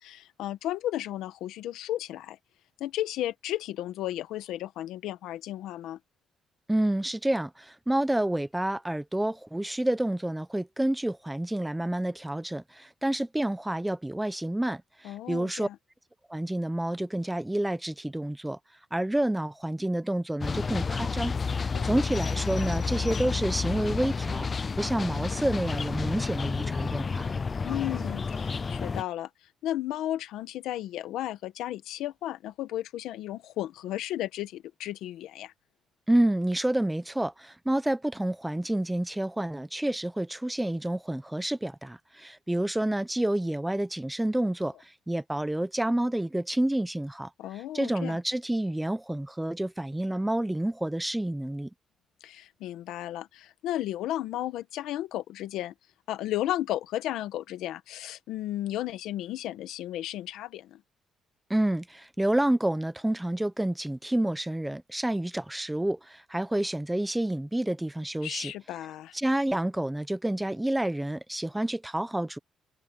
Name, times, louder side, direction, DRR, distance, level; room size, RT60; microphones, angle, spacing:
voice 1, 0.0-2.4 2.8-6.0 15.0-15.8 21.7-22.0 27.6-29.3 29.6-35.5 47.4-48.2 52.2-55.7 56.1-60.8 68.2-69.2, left 13 dB, 90° left, 1.3 m, -34 dB
voice 2, 6.7-15.7 16.3-18.6 18.9-24.5 24.8-27.3 36.1-47.3 47.7-51.7 61.5-68.5 69.1-72.4, right 1 dB, 10° right, 0.9 m, -29 dB
sound 1, 20.4-29.0, left 5 dB, 35° left, 0.4 m, -30 dB
cardioid pair, 90°, 0 cm